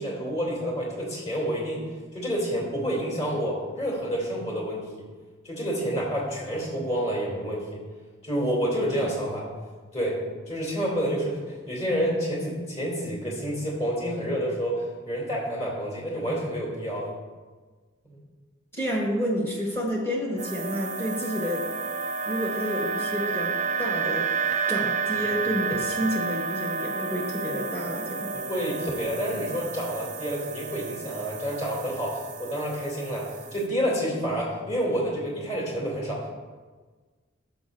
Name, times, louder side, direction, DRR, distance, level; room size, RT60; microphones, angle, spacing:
voice 1, 0.0-1.8 2.1-5.0 5.4-7.8 8.2-9.5 9.9-10.2 10.5-17.1 18.1-18.2 28.3-36.3, equal, 30° left, -5 dB, 2.4 m, -29 dB
voice 2, 18.7-21.7 22.2-24.3 24.7-28.3, equal, 10° left, -2 dB, 1.1 m, -29 dB
sound 1, 20.4-33.7, right 5 dB, 35° right, 0.4 m, -31 dB
11.5 x 6.7 x 2.4 m, 1.4 s
head